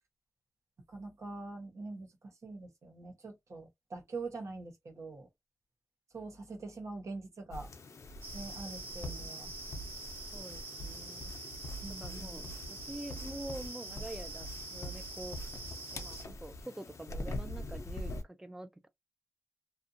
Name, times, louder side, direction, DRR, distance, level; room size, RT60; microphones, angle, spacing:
voice 1, 0.9-5.3 6.1-7.7 8.3-9.5 11.8-12.5, right 3 dB, 80° right, 1.1 m, -44 dB
sound 1, 7.5-18.2, left 1 dB, 80° left, 0.6 m, -43 dB
sound 2, 8.2-16.2, right 3 dB, 35° right, 0.9 m, -46 dB
voice 2, 10.3-11.3 12.0-15.5 15.9-18.9, right 1 dB, 10° right, 0.3 m, -46 dB
2.6 x 2.4 x 2.5 m
wide cardioid pair, 120°, 5 cm